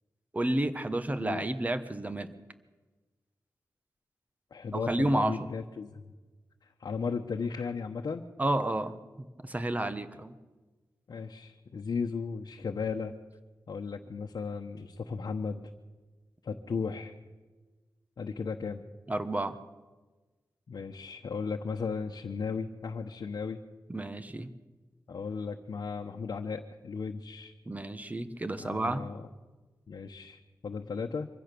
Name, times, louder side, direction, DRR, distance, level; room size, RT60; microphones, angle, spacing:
voice 1, 0.3-2.3 4.7-5.4 8.4-10.3 19.1-19.6 23.9-24.5 27.7-29.0, right 1 dB, 20° right, 11 dB, 1.3 m, -31 dB
voice 2, 4.5-6.0 6.6-8.2 11.1-13.1 13.7-15.6 16.4-17.1 18.2-18.8 20.7-23.6 25.1-27.5 28.6-29.3 29.9-31.3, left 5 dB, 70° left, 1 dB, 1.1 m, -35 dB
24.5 x 15.5 x 6.9 m, 1.3 s
wide cardioid pair, 90°, 7 cm